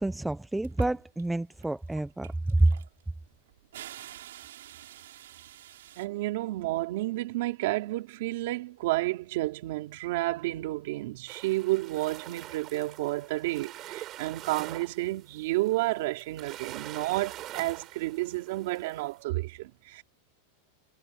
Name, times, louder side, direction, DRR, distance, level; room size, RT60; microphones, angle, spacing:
voice 1, 0.0-2.8, right 2 dB, 5° right, 0.5 m, -27 dB
sound 1, 0.6-1.3 1.6-6.1, right 13 dB, 80° right, 5.6 m, -47 dB
voice 2, 6.0-20.0, right 18 dB, 50° right, 3.4 m, -31 dB
sound 2, 11.3-19.1, right 14 dB, 25° right, 5.3 m, -45 dB
supercardioid pair, 180°, 0 cm